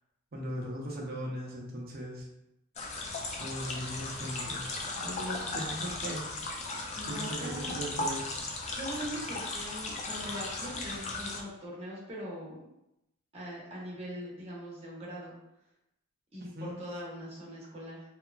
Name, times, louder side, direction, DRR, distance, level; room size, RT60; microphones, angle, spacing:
voice 1, 0.3-2.3 3.4-4.7 5.0-6.3 7.1-8.3 16.5-16.7, equal, 50° right, -2 dB, 0.6 m, -38 dB
sound 1, 2.8-11.4, left 2 dB, 35° left, 0.4 m, -36 dB
voice 2, 6.9-7.9 8.7-12.6 13.3-15.3 16.3-18.0, equal, 30° right, -6 dB, 0.9 m, -41 dB
2.9 x 2.4 x 2.2 m, 0.85 s
head